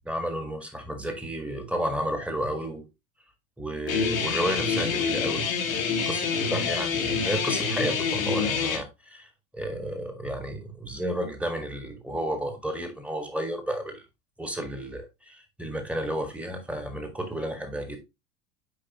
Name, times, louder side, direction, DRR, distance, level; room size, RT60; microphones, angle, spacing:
voice 1, 0.0-2.8 3.6-5.5 6.0-9.3 9.5-14.0 14.4-18.0, right 1 dB, 5° right, 1.7 m, -32 dB
Guitar, 3.9-8.8, left 5 dB, 75° left, 1.7 m, -27 dB
8.6 x 4.9 x 2.9 m
figure-of-eight pair, 80°, 41 cm